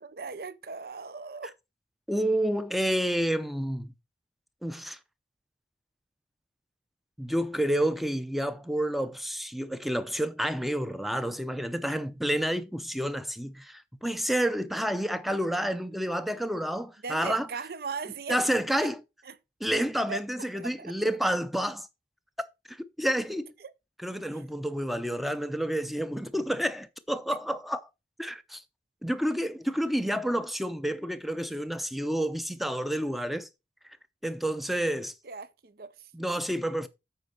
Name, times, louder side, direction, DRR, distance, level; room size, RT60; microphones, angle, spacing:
voice 1, 0.0-1.5 17.0-18.5 18.8-18.9 19.2-19.4 20.1-20.2 20.5-21.0 23.6-23.7 24.3-24.4 35.2-36.1, right 4 dB, 55° right, 0.6 m, -38 dB
voice 2, 2.1-3.9 4.6-5.0 7.2-17.5 18.3-19.0 19.6-21.9 22.7-23.5 24.0-27.8 28.2-28.6 29.0-33.5 34.2-35.1 36.1-36.9, equal, ahead, 0.6 m, -29 dB
8.2 x 5.1 x 5.2 m
head